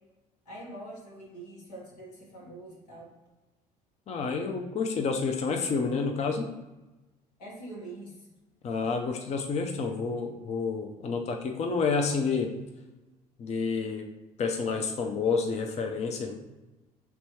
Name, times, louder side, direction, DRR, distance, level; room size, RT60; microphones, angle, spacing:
voice 1, 0.4-3.1 7.4-8.3, right 1 dB, 90° left, -4 dB, 1.5 m, -44 dB
voice 2, 4.1-6.5 8.6-12.5 13.4-14.1 14.4-16.4, left 4 dB, 35° left, 4 dB, 0.5 m, -29 dB
4.0 x 3.4 x 3.1 m, 1.1 s
hypercardioid pair, 70°, 19 cm